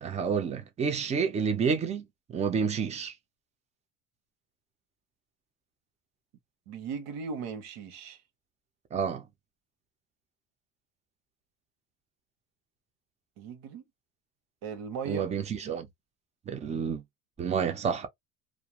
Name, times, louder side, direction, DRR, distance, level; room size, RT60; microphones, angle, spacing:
voice 1, 0.0-3.1 8.9-9.2 15.1-15.9 16.5-17.0 17.4-18.1, right 6 dB, 20° right, 0.4 m, -29 dB
voice 2, 6.7-8.2 13.4-13.8 14.6-15.3, right 5 dB, 85° right, 1.0 m, -37 dB
2.4 x 2.2 x 2.9 m
cardioid pair, 170°, 34 cm